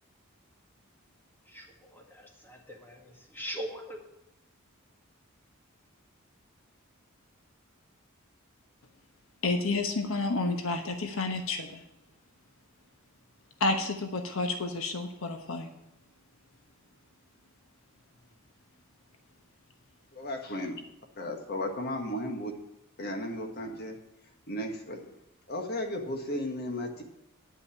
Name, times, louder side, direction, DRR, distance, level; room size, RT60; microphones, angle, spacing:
voice 1, 1.9-4.0, equal, 10° left, 0 dB, 1.9 m, -41 dB
voice 2, 9.4-11.8 13.6-15.7, left 3 dB, 75° left, 5 dB, 1.1 m, -30 dB
voice 3, 20.2-20.7 21.2-22.5 23.0-23.9 24.5-25.0 25.5-27.0, left 1 dB, 50° left, 3 dB, 1.6 m, -34 dB
9.9 x 5.8 x 8.4 m, 0.87 s
head